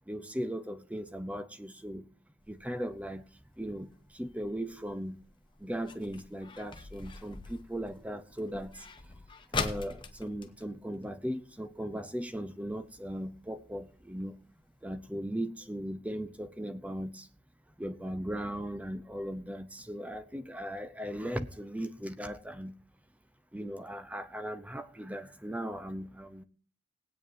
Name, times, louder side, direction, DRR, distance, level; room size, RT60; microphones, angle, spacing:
voice 1, 0.1-2.0 2.5-3.2 3.6-3.9 4.2-5.2 5.6-8.7 9.5-14.3 14.8-17.2 17.8-22.7 23.5-26.4, equal, 5° right, 0.7 m, -38 dB
sound 1, 2.4-11.7 12.0-12.1 12.3-12.7 13.2-13.3 13.8-13.9 14.2-14.3 14.7-14.8, left 4 dB, 25° left, 1.0 m, -42 dB
18.5 x 9.1 x 2.7 m
head